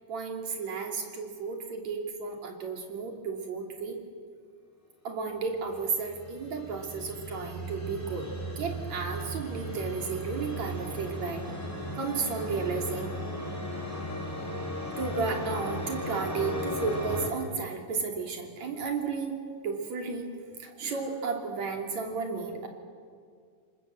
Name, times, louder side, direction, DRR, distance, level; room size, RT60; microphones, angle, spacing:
voice 1, 0.1-4.0 5.0-8.3 8.6-11.4 11.9-13.1 15.0-20.3 20.6-22.7, right 5 dB, 60° right, 3 dB, 4.1 m, -33 dB
sound 1, 5.7-17.3, equal, 5° left, 4.9 m, -36 dB
28.0 x 24.5 x 7.7 m, 2.1 s
omnidirectional pair, 3.6 m